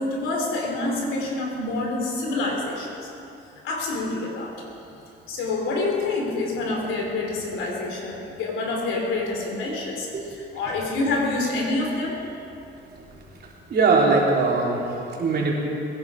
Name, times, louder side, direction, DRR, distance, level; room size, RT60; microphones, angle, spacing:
voice 1, 0.0-3.1 3.6-4.5 5.3-12.2, left 2 dB, 90° left, 0 dB, 3.3 m, -27 dB
voice 2, 13.7-15.5, right 3 dB, 55° right, -3 dB, 3.5 m, -21 dB
22.0 x 11.0 x 4.8 m, 2.8 s
cardioid pair, 90°, 20 cm